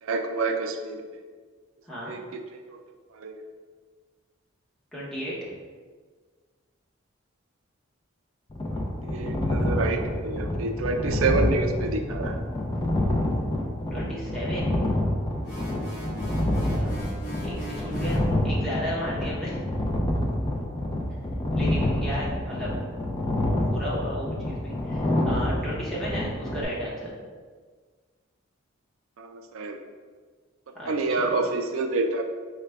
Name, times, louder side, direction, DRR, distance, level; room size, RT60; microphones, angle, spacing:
voice 1, 0.0-1.2 2.0-2.8 3.1-3.4 8.7-12.4 29.2-29.8 30.8-32.2, right 3 dB, 80° right, 5 dB, 0.4 m, -28 dB
voice 2, 1.9-2.2 4.9-5.5 13.9-14.7 16.6-17.1 17.4-19.6 21.1-22.7 23.6-27.1 30.7-31.3, equal, ahead, -8 dB, 0.8 m, -34 dB
sound 1, 8.5-26.6, left 1 dB, 20° left, 0.4 m, -27 dB
sound 2, 15.4-18.3, right 1 dB, 45° left, 1.1 m, -40 dB
4.7 x 2.2 x 3.4 m, 1.5 s
head